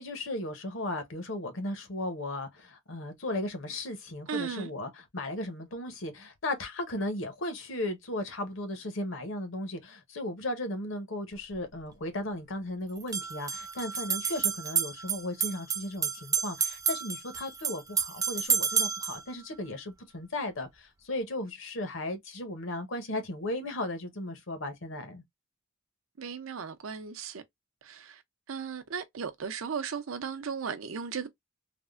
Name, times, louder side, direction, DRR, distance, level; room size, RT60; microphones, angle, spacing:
voice 1, 0.0-25.2, left 1 dB, 65° left, 0.8 m, -36 dB
voice 2, 4.3-4.7 26.2-27.4 27.8-28.2 28.5-31.3, right 6 dB, 80° right, 0.6 m, -36 dB
sound 1, 11.3-11.4 13.0-19.2, right 7 dB, 15° right, 0.3 m, -30 dB
3.4 x 2.1 x 2.3 m
head